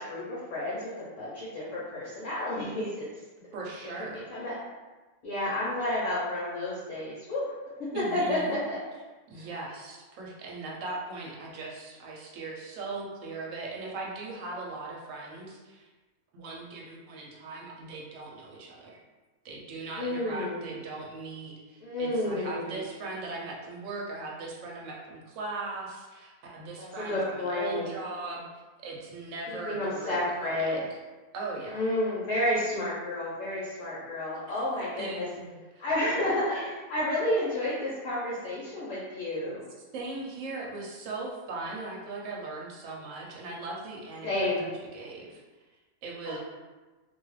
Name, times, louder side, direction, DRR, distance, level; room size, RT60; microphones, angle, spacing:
voice 1, 0.0-3.1 4.3-4.6 5.2-7.5 7.8-8.8 9.3-9.5 20.0-20.7 21.8-22.8 26.8-27.9 29.5-30.8 31.6-35.3 35.8-39.6 44.2-44.7 46.3-46.4, left 1 dB, 75° left, -7 dB, 1.1 m, -31 dB
voice 2, 3.5-4.3 7.9-8.6 9.3-15.9 16.3-19.0 19.4-30.8 31.3-31.9 34.5-34.6 35.0-35.8 39.9-45.4 46.0-46.4, right 3 dB, 75° right, -2 dB, 1.0 m, -39 dB
2.5 x 2.3 x 3.1 m, 1.2 s
omnidirectional pair, 1.4 m